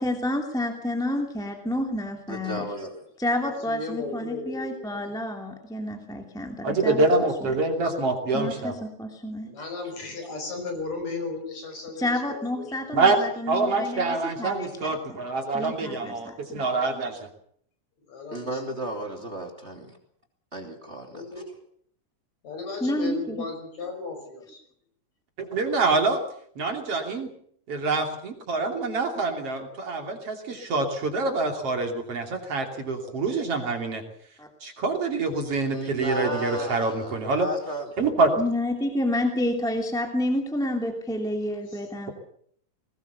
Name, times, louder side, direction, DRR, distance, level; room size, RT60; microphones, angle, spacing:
voice 1, 0.0-2.6 3.2-7.1 7.4-7.5 8.3-9.5 12.0-15.2 15.5-16.6 22.8-23.5 34.4-34.5 37.1-37.2 38.4-42.1, left 1 dB, ahead, 3 dB, 2.4 m, -29 dB
voice 2, 2.3-3.0 18.3-20.0 20.5-21.2 35.6-37.9, right 1 dB, 20° right, 2 dB, 3.1 m, -34 dB
voice 3, 3.4-5.1 9.4-12.7 18.1-18.8 21.1-21.5 22.4-24.6 41.7-41.9, left 4 dB, 60° left, 4 dB, 6.6 m, -35 dB
voice 4, 6.6-8.7 12.9-13.2 13.5-17.3 25.4-26.2 26.6-27.3 27.7-34.0 34.6-37.5 38.0-38.3, right 3 dB, 50° right, 3 dB, 3.8 m, -26 dB
21.5 x 19.5 x 7.0 m, 0.64 s
omnidirectional pair, 3.4 m